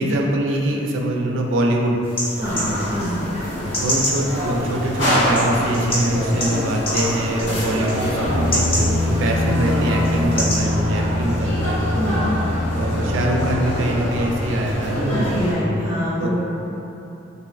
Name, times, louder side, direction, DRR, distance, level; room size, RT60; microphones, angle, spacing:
voice 1, 0.0-2.0 2.5-2.7 3.8-11.8 12.7-15.6 16.2-16.4, right 1 dB, 80° right, 0 dB, 0.3 m, -23 dB
sound 1, 2.0-10.6, left 1 dB, 30° left, 0.5 m, -29 dB
sound 2, 2.4-15.5, equal, 70° left, 1.0 m, -25 dB
voice 2, 2.9-3.2 12.0-12.2 15.1-16.4, equal, 25° right, -10 dB, 0.7 m, -25 dB
sound 3, 7.4-14.8, left 2 dB, 90° left, 0.7 m, -25 dB
3.1 x 2.7 x 2.3 m, 3.0 s
head